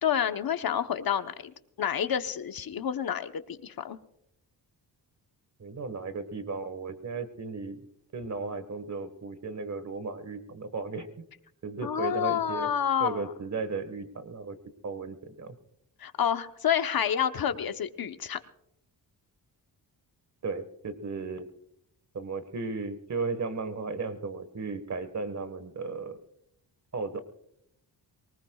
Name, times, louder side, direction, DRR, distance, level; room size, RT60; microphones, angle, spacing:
voice 1, 0.0-4.0 11.8-13.3 16.0-18.4, left 9 dB, 60° left, 9 dB, 1.0 m, -29 dB
voice 2, 5.6-7.9 8.1-11.3 11.6-12.7 13.0-14.6 14.8-15.6 20.4-21.5 22.1-26.2 26.9-27.2, right 4 dB, 40° right, 12 dB, 1.6 m, -35 dB
23.5 x 19.0 x 2.4 m, 0.76 s
cardioid pair, 90°, 42 cm